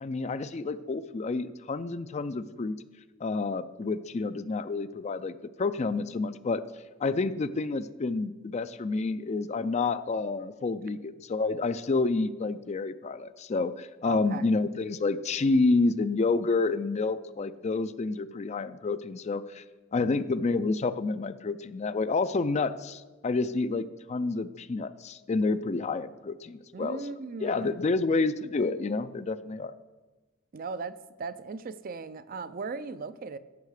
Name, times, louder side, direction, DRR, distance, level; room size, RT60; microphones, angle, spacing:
voice 1, 0.0-2.8 3.2-6.6 7.0-19.6 19.9-27.0 27.4-29.7, left 3 dB, 30° left, 0.4 m, -29 dB
voice 2, 14.0-14.4 20.0-20.3 26.7-28.2 30.5-33.4, right 4 dB, 45° right, 0.4 m, -38 dB
15.5 x 5.7 x 4.9 m
head